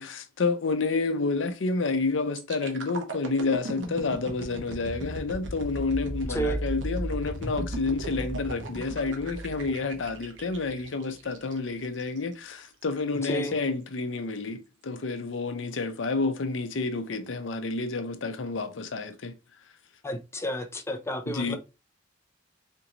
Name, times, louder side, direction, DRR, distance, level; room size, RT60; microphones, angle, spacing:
voice 1, 0.0-19.3 21.3-21.6, left 3 dB, 90° left, 0.6 m, -29 dB
sound 1, 2.3-12.2 12.6-12.8, right 1 dB, 75° right, 0.9 m, -36 dB
voice 2, 6.2-6.6 13.1-13.5 20.0-21.6, right 1 dB, 15° left, 0.5 m, -31 dB
4.3 x 2.6 x 2.9 m
head